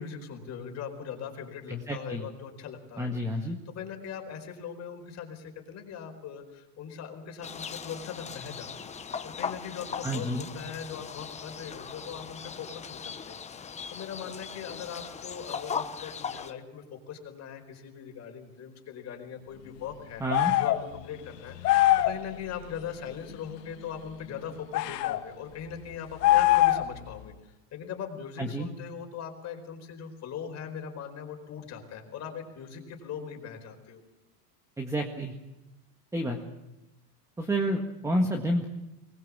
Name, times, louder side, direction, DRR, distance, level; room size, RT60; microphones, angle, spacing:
voice 1, 0.0-9.0 9.2-20.2 20.6-34.0, left 7 dB, 35° left, 4 dB, 4.7 m, -40 dB
voice 2, 1.7-2.2 3.0-3.6 10.0-10.5 20.2-20.5 28.4-28.7 34.8-35.3 36.1-36.4 37.4-38.7, equal, 5° right, 4 dB, 1.7 m, -29 dB
sound 1, 7.4-16.5, left 6 dB, 15° left, 1.0 m, -39 dB
sound 2, 20.3-20.8 21.6-22.2 24.7-25.2 26.2-27.0, left 15 dB, 85° left, 1.7 m, -22 dB
23.0 x 20.5 x 7.4 m, 1.0 s
supercardioid pair, 140°, 47 cm